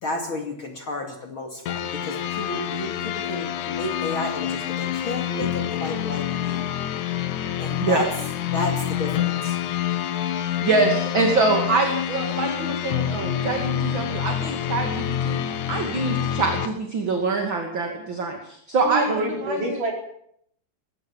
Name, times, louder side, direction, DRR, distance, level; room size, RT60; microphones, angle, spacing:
voice 1, 0.0-6.6 7.6-8.1 8.5-9.5, left 2 dB, 40° left, 3 dB, 2.8 m, -32 dB
sound 1, 1.7-16.7, left 10 dB, 65° left, 2.5 m, -27 dB
voice 2, 10.6-15.4 15.7-19.8, right 3 dB, 35° right, 2 dB, 3.0 m, -24 dB
voice 3, 18.8-19.9, right 2 dB, 60° right, 1 dB, 5.9 m, -26 dB
21.0 x 17.5 x 7.2 m, 0.68 s
omnidirectional pair, 4.1 m